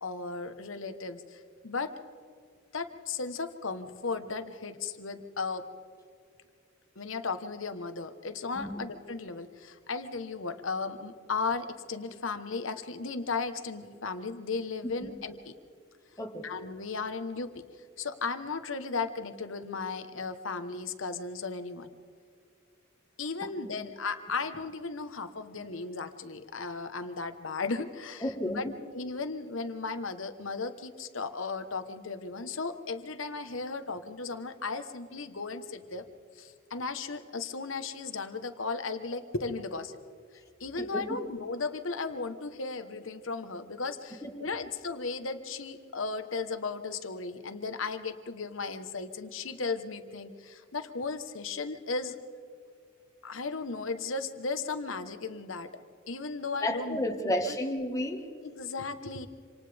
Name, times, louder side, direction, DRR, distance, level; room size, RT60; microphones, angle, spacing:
voice 1, 0.0-1.9 2.7-5.6 7.0-15.5 16.4-17.6 18.0-21.9 23.2-28.6 28.9-36.0 36.4-40.0 40.6-52.2 53.2-55.7 56.1-57.2 57.5-57.6 58.4-59.3, left 4 dB, 70° left, 9 dB, 1.2 m, -35 dB
voice 2, 16.2-16.5 23.4-23.7 28.2-28.7 40.8-41.2 44.2-44.4 56.6-58.3, left 1 dB, 15° left, 4 dB, 1.7 m, -32 dB
27.0 x 27.0 x 3.5 m, 2.2 s
head